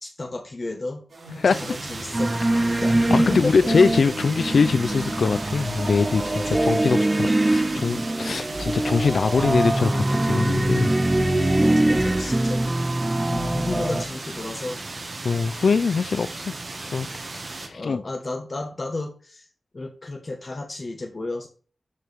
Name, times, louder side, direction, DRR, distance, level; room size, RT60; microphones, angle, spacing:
voice 1, 0.0-1.0 1.5-2.3 2.8-3.5 6.2-6.6 11.6-12.6 13.5-14.8 17.7-19.5 19.7-21.5, left 2 dB, 45° left, 1.2 m, -32 dB
sound 1, 1.1-13.0, right 1 dB, 70° right, 4.3 m, -42 dB
voice 2, 1.4-1.7 2.5-2.8 3.1-10.9 12.1-12.3 13.3-13.5 15.2-16.5 16.8-17.1 17.3-18.0, left 5 dB, 80° left, 0.3 m, -23 dB
sound 2, 1.5-17.7, right 3 dB, 50° right, 1.5 m, -36 dB
sound 3, 2.1-14.0, right 1 dB, 20° right, 0.7 m, -23 dB
12.5 x 4.6 x 3.5 m
wide cardioid pair, 100°, 0 cm